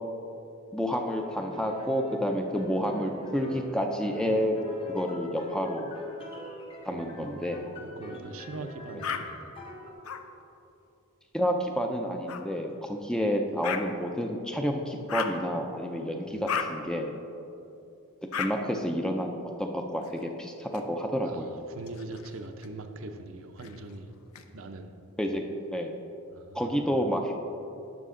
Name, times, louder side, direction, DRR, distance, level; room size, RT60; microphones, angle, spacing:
voice 1, 0.7-4.6 4.9-5.9 6.9-7.6 11.3-17.2 18.4-21.6 25.2-25.4 25.7-25.9 26.5-27.3, equal, 5° left, 3 dB, 0.4 m, -29 dB
sound 1, 1.0-9.9, left 2 dB, 25° left, 0.9 m, -43 dB
voice 2, 6.9-9.6 16.2-16.4 21.2-24.1 24.5-25.0 26.3-27.0, right 2 dB, 65° right, 6 dB, 0.6 m, -42 dB
sound 2, 9.0-9.2 10.0-10.2 12.3-12.4 13.6-13.8 15.1-15.4 16.5-16.7 18.3-18.5 20.0-20.8 21.8-22.7 23.6-24.4, left 7 dB, 70° left, 0.5 m, -35 dB
11.0 x 6.1 x 3.7 m, 2.7 s
head